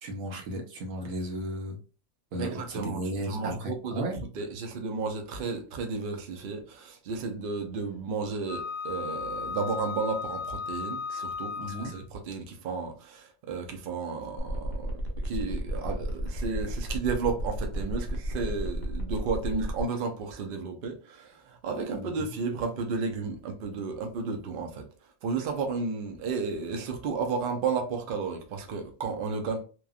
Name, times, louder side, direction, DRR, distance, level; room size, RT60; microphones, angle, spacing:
voice 1, 0.0-1.8 2.3-4.2 11.6-11.9 21.9-22.3, equal, 90° right, 1.2 m, -35 dB
voice 2, 2.4-4.0 4.3-15.0 15.2-24.9 25.2-29.6, right 4 dB, 55° right, 0.6 m, -33 dB
Wind instrument woodwind instrument, 8.5-12.1, left 5 dB, 85° left, 1.0 m, -35 dB
sound 1, 14.4-19.8, equal, 45° left, 0.7 m, -34 dB
2.9 x 2.3 x 2.3 m
omnidirectional pair, 1.4 m